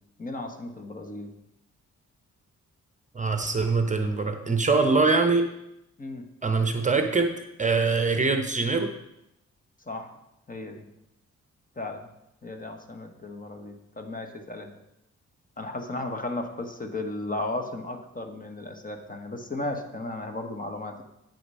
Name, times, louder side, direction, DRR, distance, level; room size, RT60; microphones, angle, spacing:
voice 1, 0.2-1.3 6.0-6.2 9.9-10.2 10.5-10.9 11.8-12.1 12.4-14.7 15.6-21.0, left 2 dB, 30° left, 5 dB, 1.2 m, -35 dB
voice 2, 3.1-5.5 6.4-8.9, right 4 dB, 25° right, 6 dB, 0.8 m, -23 dB
8.8 x 6.6 x 5.5 m, 0.85 s
cardioid pair, 100°, 30 cm